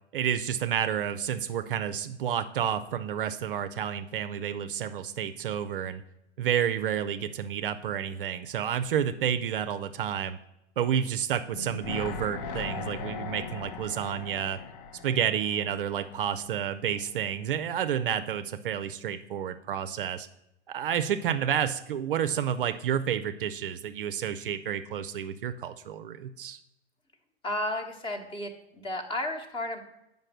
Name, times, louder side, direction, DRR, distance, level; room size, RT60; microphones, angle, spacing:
voice 1, 0.1-6.0 6.4-10.4 10.8-14.6 15.0-20.3 20.7-26.6, right 9 dB, 50° right, 11 dB, 0.5 m, -30 dB
sound 1, 11.5-16.7 17.0-17.1, left 5 dB, 40° left, 0.7 m, -39 dB
voice 2, 27.4-29.8, left 1 dB, 15° left, 5 dB, 1.0 m, -33 dB
7.5 x 5.3 x 6.2 m, 0.88 s
figure-of-eight pair, 100°, 34 cm